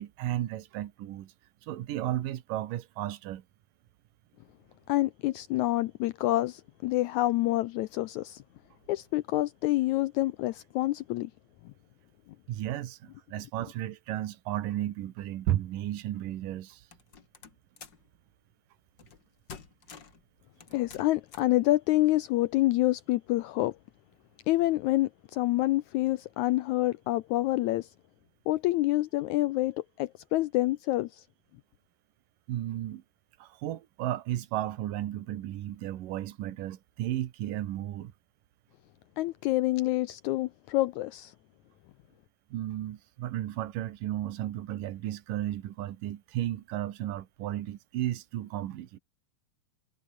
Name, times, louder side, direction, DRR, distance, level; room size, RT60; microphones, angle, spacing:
voice 1, 0.0-1.3 1.6-3.4 12.5-16.8 32.5-33.0 33.4-38.1 42.5-49.0, right 13 dB, 75° right, 2.9 m, -34 dB
voice 2, 4.9-8.4 8.9-11.3 20.7-23.8 24.5-27.9 28.5-31.2 39.2-41.3, left 17 dB, 85° left, 1.7 m, -27 dB
sound 1, 16.9-18.1 19.0-19.2 19.5-20.2 20.6-21.6, left 6 dB, 35° left, 2.3 m, -49 dB
omnidirectional pair, 4.0 m